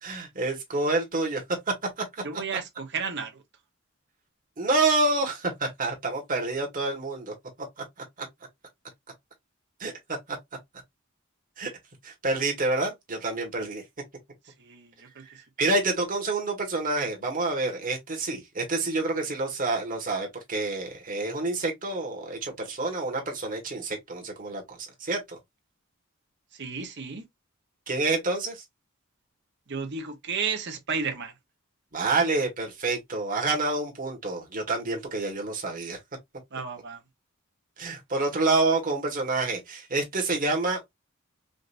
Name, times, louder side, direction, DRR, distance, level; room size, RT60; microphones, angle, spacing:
voice 1, 0.0-2.0 4.6-7.3 7.8-7.9 8.2-8.3 9.8-9.9 10.3-10.4 11.6-11.7 12.0-13.8 15.6-25.4 27.9-28.6 31.9-36.0 37.8-40.8, right 3 dB, 40° right, 1.6 m, -28 dB
voice 2, 2.2-3.4 14.6-15.2 26.5-27.2 29.7-31.3 36.5-37.0, right 5 dB, 55° right, 1.1 m, -33 dB
5.0 x 2.7 x 2.6 m
head